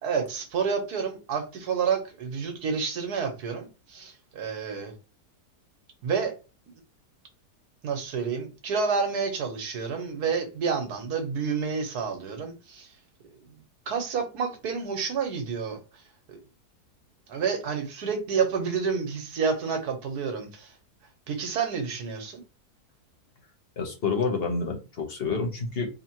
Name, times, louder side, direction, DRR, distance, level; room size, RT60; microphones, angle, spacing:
voice 1, 0.0-4.9 6.0-6.3 7.8-12.9 13.2-13.4 13.9-15.8 16.3-16.4 17.3-20.7 21.3-22.4, right 6 dB, 70° right, 1.5 m, -29 dB
voice 2, 23.8-25.9, left 4 dB, 45° left, 1.0 m, -28 dB
4.9 x 2.9 x 2.9 m
omnidirectional pair, 1.7 m